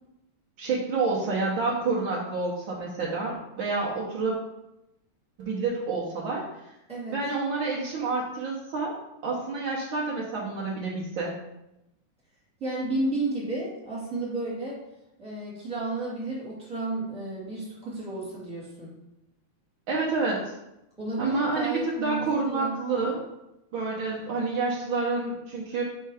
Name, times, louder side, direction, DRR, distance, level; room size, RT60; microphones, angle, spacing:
voice 1, 0.6-4.3 5.4-6.4 7.1-8.9 9.2-11.3 19.9-20.5 21.2-23.2 23.7-25.8, right 3 dB, 85° right, -4 dB, 1.0 m, -28 dB
voice 2, 12.6-14.8 15.2-18.9 21.0-22.7, right 2 dB, ahead, -6 dB, 1.7 m, -32 dB
4.6 x 4.4 x 4.8 m, 0.90 s
omnidirectional pair, 3.4 m